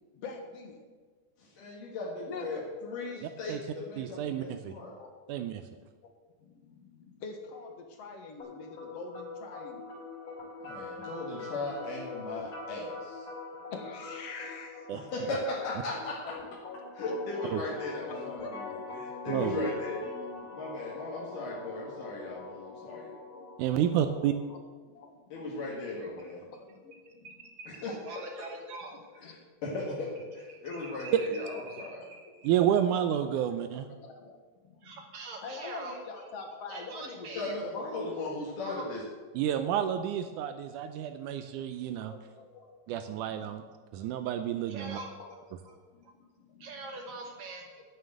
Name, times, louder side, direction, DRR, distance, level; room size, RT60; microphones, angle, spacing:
voice 1, 0.1-0.9 2.3-2.7 4.7-5.3 5.8-6.1 6.4-9.8 11.9-12.0 12.9-13.1 13.5-15.1 16.2-16.3 16.8-17.7 18.1-18.6 18.9-19.0 22.9-23.0 23.3-23.5 23.8-23.9 24.5-24.6 24.9-27.3 28.9-29.3 31.7-31.8 32.3-32.5 33.2-35.0 35.4-38.1 38.4-38.5 41.9-43.6 45.2-45.4 45.9-46.1 46.4-46.8 47.7-47.8, left 4 dB, 55° left, 3 dB, 2.3 m, -46 dB
voice 2, 1.4-4.9 10.6-13.2 14.9-16.2 16.9-20.0 20.5-23.2 25.3-26.4 27.7-27.9 29.2-30.1 30.3-32.0 37.3-39.0, left 2 dB, 75° left, -4 dB, 3.6 m, -37 dB
voice 3, 4.0-4.7 5.3-5.6 14.9-15.0 17.5-17.6 19.3-19.6 23.6-24.3 32.4-33.9 39.3-42.1 42.9-43.6 43.9-45.0, right 10 dB, 85° right, 8 dB, 2.1 m, -30 dB
sound 1, 8.4-24.4, left 4 dB, 40° left, 4.4 m, -44 dB
voice 4, 27.2-29.0 30.5-32.5 34.8-36.0 36.7-37.5 38.7-38.8 44.7-45.1 45.7-45.8 46.0-46.1 46.6-47.6, right 3 dB, 65° right, 2 dB, 2.4 m, -44 dB
9.7 x 9.3 x 7.8 m, 1.4 s
omnidirectional pair, 3.7 m